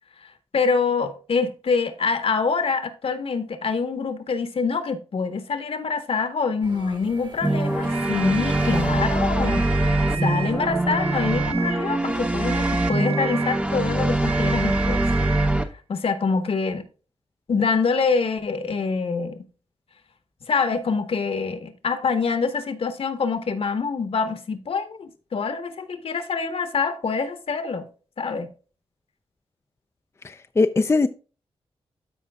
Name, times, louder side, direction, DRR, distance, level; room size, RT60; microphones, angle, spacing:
voice 1, 0.2-15.0 15.9-16.8 17.5-19.4 20.5-27.9 28.2-28.5, left 5 dB, 65° left, 1.2 m, -25 dB
sound 1, 6.6-11.7, right 2 dB, 45° right, 1.4 m, -43 dB
sound 2, 7.4-15.7, right 1 dB, 10° right, 0.9 m, -23 dB
sound 3, 7.8-8.9 9.4-10.6 10.9-11.9 12.5-13.7 14.2-15.6, right 8 dB, 65° right, 0.5 m, -34 dB
voice 2, 30.2-31.1, left 3 dB, 25° left, 0.4 m, -20 dB
13.0 x 5.2 x 2.3 m
wide cardioid pair, 95°, 11 cm